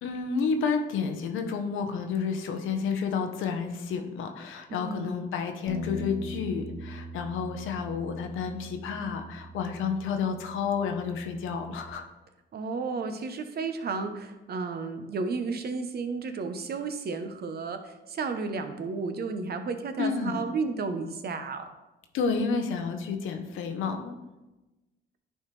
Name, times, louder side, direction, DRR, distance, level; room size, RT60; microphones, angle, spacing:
voice 1, 0.0-12.1 20.0-20.4 22.1-24.1, left 5 dB, 85° left, 6 dB, 0.8 m, -30 dB
voice 2, 4.7-5.3 12.5-21.6, right 4 dB, 50° right, 8 dB, 0.8 m, -33 dB
Bass guitar, 5.7-11.9, equal, 50° left, 1.0 m, -42 dB
10.0 x 4.4 x 3.2 m, 1.1 s
cardioid pair, 90°, 20 cm